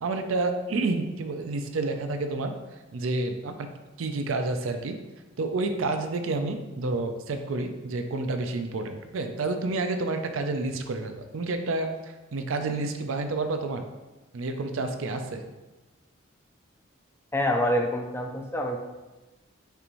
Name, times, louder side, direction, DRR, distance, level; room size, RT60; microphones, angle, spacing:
voice 1, 0.0-2.5 2.9-3.7 4.0-5.0 5.4-11.9 12.3-13.9 14.3-15.4, right 3 dB, 75° right, 6 dB, 0.5 m, -29 dB
voice 2, 17.3-18.8, left 1 dB, 10° left, 2 dB, 0.3 m, -26 dB
6.6 x 2.5 x 3.0 m, 1.1 s
head